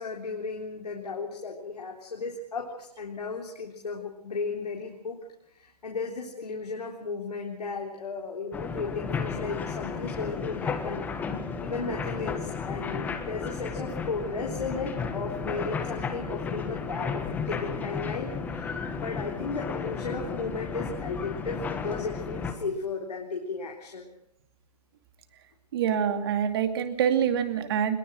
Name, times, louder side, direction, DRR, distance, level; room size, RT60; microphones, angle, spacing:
voice 1, 0.0-5.2 5.5-11.1 11.6-24.1, left 4 dB, 75° left, 0 dB, 3.7 m, -35 dB
sound 1, 8.5-22.5, left 5 dB, 10° left, 1.5 m, -33 dB
voice 2, 25.7-28.0, right 8 dB, 35° right, 9 dB, 2.5 m, -25 dB
21.5 x 20.0 x 6.3 m, 0.78 s
hypercardioid pair, 150°, 20 cm